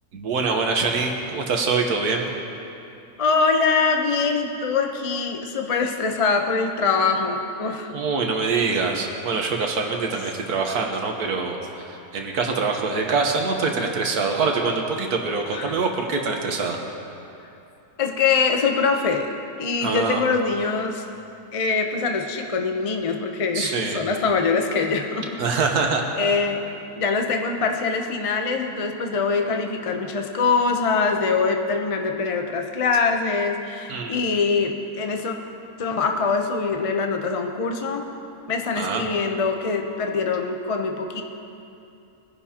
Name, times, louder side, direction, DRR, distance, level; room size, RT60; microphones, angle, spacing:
voice 1, 0.1-2.3 7.9-16.8 19.8-20.2 23.5-24.0 25.4-26.0 33.9-34.2 38.7-39.0, right 4 dB, 80° right, 2 dB, 1.6 m, -24 dB
voice 2, 3.2-7.9 15.5-15.7 18.0-19.3 19.6-21.0 21.5-25.6 26.2-26.7 26.9-35.4 35.8-38.1 38.5-41.2, left 4 dB, 35° left, 3 dB, 0.5 m, -23 dB
22.0 x 10.5 x 2.9 m, 2.7 s
omnidirectional pair, 1.6 m